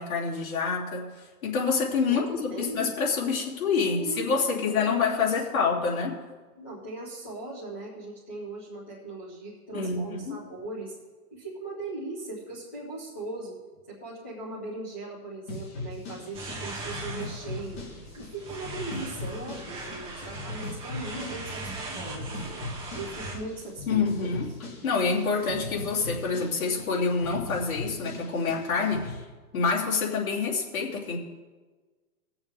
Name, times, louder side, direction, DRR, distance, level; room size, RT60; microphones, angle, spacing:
voice 1, 0.0-6.2 9.7-10.4 23.9-24.5 24.8-29.2 29.5-31.2, left 5 dB, 60° left, -4 dB, 3.1 m, -27 dB
voice 2, 2.0-2.9 3.7-5.7 6.6-10.9 11.3-13.6 13.9-17.9 18.2-22.6 22.9-24.3, right 2 dB, 10° left, -7 dB, 0.4 m, -39 dB
sound 1, 15.5-29.2, left 2 dB, 40° left, 2.6 m, -39 dB
sound 2, 16.3-23.4, right 2 dB, 10° right, 1.4 m, -39 dB
19.0 x 7.1 x 3.5 m, 1.3 s
hypercardioid pair, 160°, 47 cm